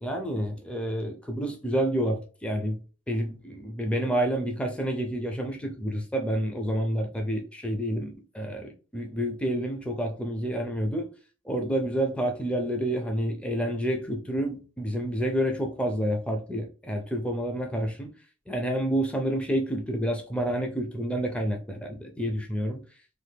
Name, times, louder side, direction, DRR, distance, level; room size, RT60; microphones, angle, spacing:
voice 1, 0.0-2.8 3.1-11.1 11.5-18.1 18.5-22.8, right 1 dB, 5° left, 0.5 m, -29 dB
3.2 x 2.1 x 3.3 m
head